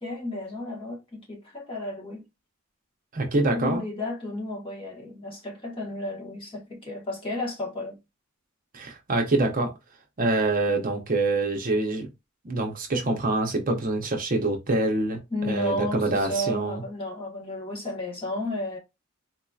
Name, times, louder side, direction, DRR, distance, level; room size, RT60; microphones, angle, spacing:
voice 1, 0.0-2.2 3.5-8.0 15.3-18.8, left 1 dB, 25° left, 1.2 m, -32 dB
voice 2, 3.1-3.8 8.7-9.7 10.2-12.1 12.4-15.2 15.4-16.8, right 2 dB, 40° right, 0.7 m, -25 dB
3.9 x 2.7 x 2.3 m
head